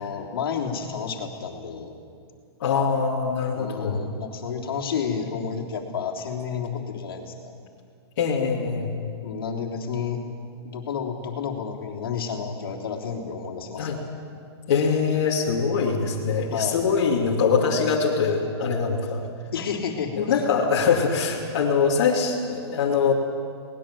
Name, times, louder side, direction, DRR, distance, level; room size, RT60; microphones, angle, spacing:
voice 1, 0.0-1.9 3.5-7.5 9.2-10.2 10.6-14.1 16.5-16.8 19.5-20.4, left 6 dB, 60° left, -1 dB, 3.4 m, -31 dB
voice 2, 2.6-4.0 8.2-8.9 13.8-14.0 14.7-19.3 20.2-23.1, left 5 dB, 40° left, -5 dB, 2.6 m, -23 dB
22.0 x 19.5 x 7.6 m, 2.3 s
hypercardioid pair, 175°, 14 cm